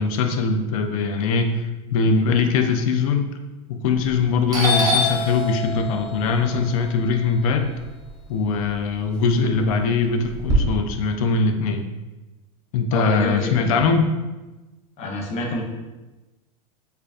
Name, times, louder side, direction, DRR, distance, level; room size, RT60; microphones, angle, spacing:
voice 1, 0.0-3.3 3.7-7.7 8.3-11.9 12.7-14.1, left 4 dB, 70° left, 6 dB, 0.5 m, -21 dB
Doorbell, 3.9-4.2 4.5-8.6 9.0-10.5, left 2 dB, 20° right, 0.8 m, -26 dB
voice 2, 12.9-13.8 15.0-15.6, left 2 dB, 35° left, -1 dB, 0.8 m, -27 dB
4.4 x 2.5 x 2.5 m, 1.1 s
supercardioid pair, 125°, 19 cm